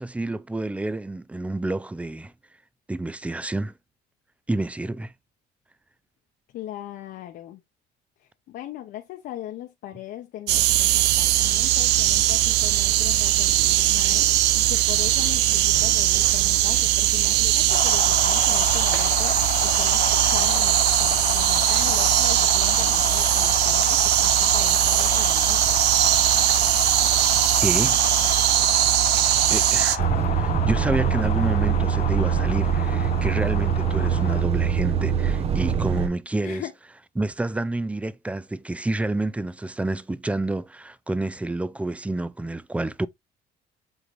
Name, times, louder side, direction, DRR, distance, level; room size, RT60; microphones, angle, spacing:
voice 1, 0.0-2.3 2.9-3.7 4.5-5.1 27.6-28.0 29.5-30.1 30.4-36.6 37.2-43.1, right 2 dB, 5° right, 0.5 m, -29 dB
voice 2, 6.5-7.6 8.5-25.8 36.4-36.7, left 13 dB, 70° left, 1.0 m, -39 dB
sound 1, 10.5-30.0, right 14 dB, 90° right, 0.7 m, -20 dB
sound 2, 17.7-34.4, left 10 dB, 50° left, 0.5 m, -31 dB
Truck, 30.0-36.1, right 8 dB, 35° right, 0.9 m, -23 dB
8.0 x 3.8 x 3.3 m
cardioid pair, 110°, 17 cm